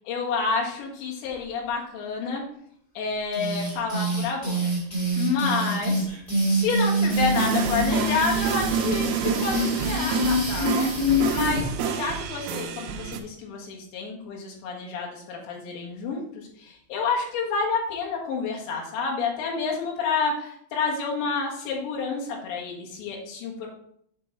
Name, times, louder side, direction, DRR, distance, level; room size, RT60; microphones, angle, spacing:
voice 1, 0.1-2.4 3.0-4.7 5.2-6.1 6.5-23.7, left 4 dB, 75° left, -2 dB, 3.8 m, -29 dB
sound 1, 3.3-11.6, equal, 40° left, 0.5 m, -25 dB
sound 2, 7.1-13.2, right 7 dB, 85° right, 2.2 m, -29 dB
8.2 x 4.5 x 4.1 m, 0.68 s
omnidirectional pair, 5.3 m